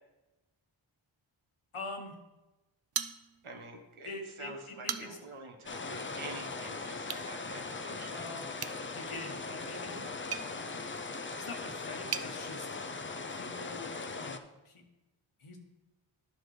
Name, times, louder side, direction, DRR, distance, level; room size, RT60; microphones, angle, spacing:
voice 1, 1.7-2.2 4.0-5.2 8.1-8.5 8.9-10.0 11.4-12.7 13.3-14.8 15.4-15.6, left 2 dB, 85° left, 3 dB, 1.2 m, -44 dB
sound 1, 2.9-3.7 4.1-4.2 4.6-5.4 7.0-7.3 8.6-12.3, right 8 dB, 50° right, 0.5 m, -41 dB
voice 2, 3.4-8.3, right 3 dB, 75° right, 3 dB, 1.2 m, -47 dB
sound 2, 5.7-14.4, left 3 dB, 25° left, 0.4 m, -40 dB
10.5 x 5.8 x 3.2 m, 1.1 s
wide cardioid pair, 65°, 49 cm